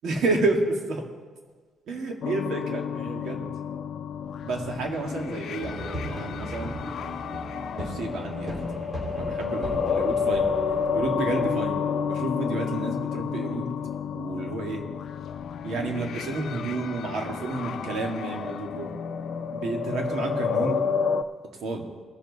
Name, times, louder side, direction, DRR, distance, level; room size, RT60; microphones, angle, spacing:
voice 1, 0.0-1.0 1.9-3.5 4.4-6.8 7.7-8.6 9.1-10.4 10.9-13.8 14.1-14.8 15.6-18.9 19.5-20.8 21.6-21.9, right 3 dB, 70° right, 2 dB, 2.0 m, -30 dB
sound 1, 2.2-21.2, left 6 dB, 65° left, 0.5 m, -30 dB
sound 2, 5.6-13.1, equal, 25° right, 3.4 m, -38 dB
19.5 x 7.0 x 4.1 m, 1.5 s
cardioid pair, 115°, 0 cm